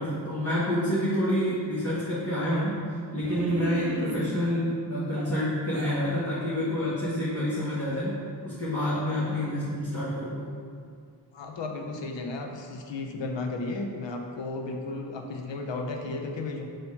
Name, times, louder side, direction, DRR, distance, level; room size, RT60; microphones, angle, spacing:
voice 1, 0.0-2.8 3.1-10.5, equal, 30° left, -9 dB, 1.6 m, -28 dB
sound 1, 3.2-4.5 5.2-6.0, right 2 dB, 40° right, 0.9 m, -34 dB
voice 2, 11.3-16.7, left 3 dB, 80° left, 3 dB, 0.8 m, -34 dB
5.1 x 4.5 x 5.6 m, 2.2 s
cardioid pair, 60°, 44 cm